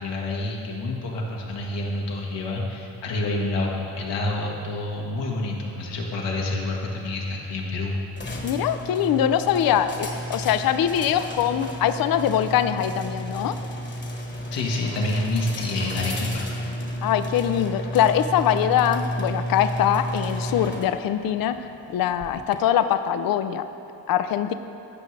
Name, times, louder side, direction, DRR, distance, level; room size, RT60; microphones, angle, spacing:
voice 1, 0.0-7.9 14.5-16.5, left 2 dB, 85° left, -2 dB, 1.5 m, -28 dB
sound 1, 8.1-22.6, equal, 25° left, 1.2 m, -32 dB
voice 2, 8.4-13.6 17.0-23.7 24.1-24.5, left 10 dB, 55° left, 11 dB, 0.5 m, -23 dB
15.5 x 5.6 x 3.3 m, 2.9 s
cardioid pair, 80°, 42 cm